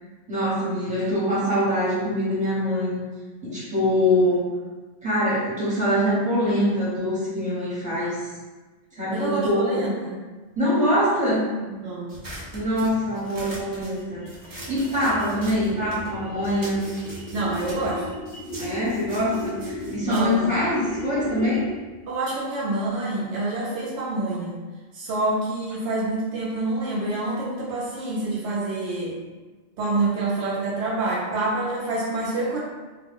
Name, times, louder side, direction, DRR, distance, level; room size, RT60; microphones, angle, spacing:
voice 1, 0.3-3.0 3.4-4.5 5.0-8.3 8.9-9.8 10.5-11.5 12.5-16.8 18.6-21.7, equal, 5° right, -11 dB, 1.1 m, -24 dB
voice 2, 9.1-10.2 11.7-12.1 17.3-18.1 20.1-20.5 22.1-24.6 24.9-29.2 29.8-32.6, right 2 dB, 75° right, -5 dB, 0.9 m, -27 dB
sound 1, 12.1-16.1 16.4-21.2, right 1 dB, 35° right, 0.3 m, -43 dB
sound 2, 13.2-21.9, left 1 dB, 45° left, 0.4 m, -36 dB
2.3 x 2.1 x 3.5 m, 1.3 s
omnidirectional pair, 1.2 m